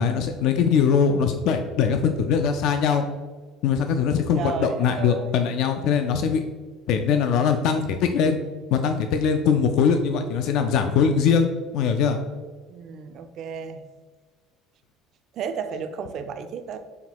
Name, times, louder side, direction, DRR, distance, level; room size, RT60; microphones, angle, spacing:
voice 1, 0.0-3.0 3.6-6.4 6.9-8.4 8.7-12.2, left 6 dB, 65° left, 6 dB, 0.3 m, -21 dB
voice 2, 4.3-5.4 12.7-13.8 15.3-16.8, right 6 dB, 50° right, 8 dB, 0.4 m, -33 dB
5.7 x 2.2 x 2.9 m, 1.4 s
cardioid pair, 125°, 0 cm